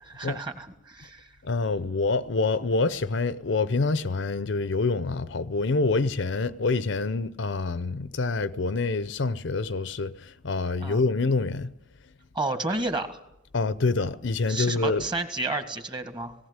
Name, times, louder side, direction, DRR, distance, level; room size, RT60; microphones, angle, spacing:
voice 1, 0.0-1.3 10.8-11.0 12.3-13.2 14.5-16.4, right 2 dB, 25° right, 1.8 m, -31 dB
voice 2, 1.4-11.7 13.5-15.0, left 3 dB, 65° left, 0.7 m, -26 dB
18.5 x 17.5 x 9.6 m
head